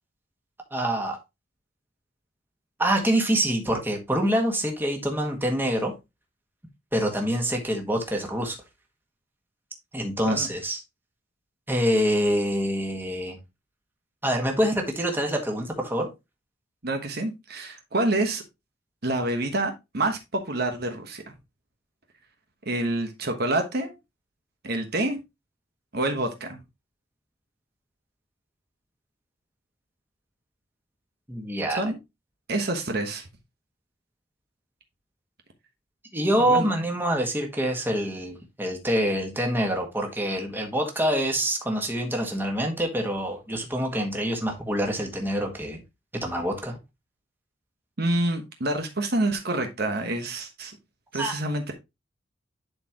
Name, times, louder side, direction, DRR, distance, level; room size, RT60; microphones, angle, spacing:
voice 1, 0.7-1.2 2.8-5.9 6.9-8.6 9.9-10.8 11.7-13.4 14.2-16.1 31.3-31.8 36.1-45.8 46.2-46.8 51.1-51.3, equal, 10° right, 1.6 m, -26 dB
voice 2, 16.8-18.4 19.0-21.2 22.6-23.9 24.6-25.2 25.9-26.6 31.7-32.0 32.5-33.3 36.4-36.7 48.0-50.8 51.1-51.7, right 2 dB, 55° right, 1.2 m, -27 dB
11.0 x 4.4 x 3.0 m
head